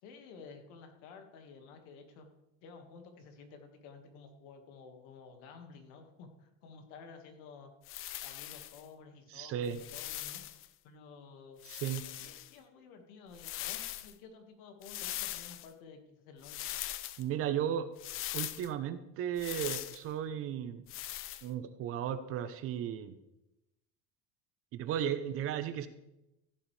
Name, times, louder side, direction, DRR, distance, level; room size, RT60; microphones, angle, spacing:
voice 1, 0.0-2.3 2.6-7.7 8.2-10.4 10.8-11.6 12.0-16.6, left 5 dB, 75° left, 5 dB, 1.9 m, -53 dB
sound 1, 7.8-8.8 9.6-10.7 11.6-12.5 13.3-14.1 14.8-15.7 16.4-17.2 18.0-18.7 19.4-20.0 20.9-21.5, left 14 dB, 40° left, 0.5 m, -41 dB
voice 2, 9.3-9.8 11.7-12.0 17.2-17.9 18.3-20.8 21.4-23.2 24.7-25.9, right 9 dB, 45° right, 11 dB, 0.8 m, -35 dB
15.0 x 7.9 x 3.3 m, 0.91 s
cardioid pair, 145°, 32 cm